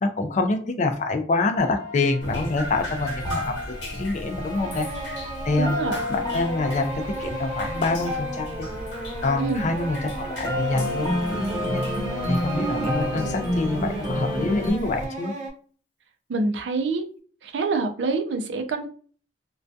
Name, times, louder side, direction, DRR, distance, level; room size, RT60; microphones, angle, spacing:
voice 1, 0.0-3.6 4.0-5.2 5.5-8.7 9.2-11.8 12.3-15.3, left 3 dB, 40° left, 6 dB, 0.4 m, -26 dB
sound 1, 1.6-14.7, left 1 dB, 20° left, 0.9 m, -31 dB
Drip, 2.2-15.1, equal, 85° left, 1.0 m, -37 dB
sound 2, 4.0-15.5, right 1 dB, 40° right, 0.7 m, -36 dB
voice 2, 5.6-6.0 9.4-9.7 16.3-17.1 17.4-18.9, right 3 dB, 75° right, 7 dB, 0.4 m, -26 dB
2.3 x 2.2 x 2.6 m, 0.44 s
head